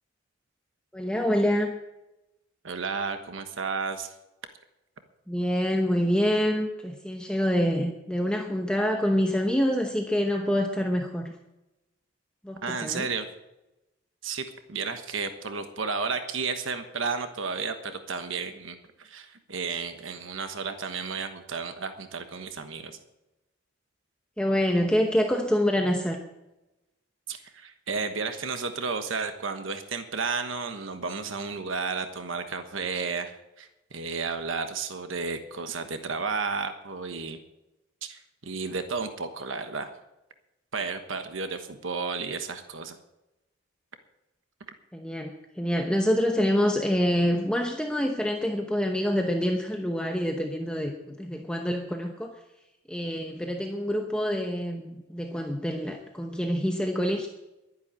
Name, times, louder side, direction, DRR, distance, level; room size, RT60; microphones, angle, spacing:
voice 1, 0.9-1.8 5.3-11.3 12.4-13.1 24.4-26.2 44.9-52.4 52.9-57.3, equal, 5° left, 2 dB, 0.9 m, -26 dB
voice 2, 2.6-4.1 12.6-13.3 14.2-23.0 27.3-37.4 38.0-39.9 40.7-43.0, right 4 dB, 90° right, 8 dB, 1.3 m, -32 dB
11.5 x 10.5 x 9.0 m, 0.97 s
head